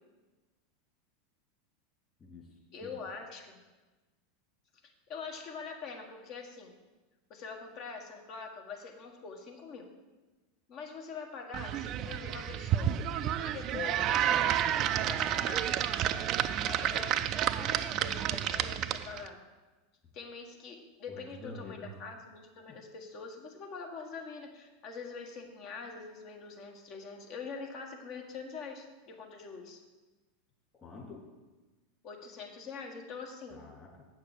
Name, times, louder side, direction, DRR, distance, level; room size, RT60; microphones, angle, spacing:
voice 1, 2.7-3.6 4.8-6.7 7.3-9.9 10.7-13.0 13.4-15.8 16.7-17.1 17.4-19.4 20.1-29.8 32.0-33.6, left 5 dB, 50° left, 2 dB, 1.5 m, -44 dB
sound 1, 11.5-19.3, right 10 dB, 45° right, 0.4 m, -30 dB
voice 2, 14.8-15.2 16.2-16.8 21.1-22.0 22.7-22.8 30.8-31.3 33.5-34.1, left 2 dB, 30° left, -2 dB, 3.0 m, -48 dB
8.0 x 6.6 x 5.0 m, 1.2 s
hypercardioid pair, 85°, 0 cm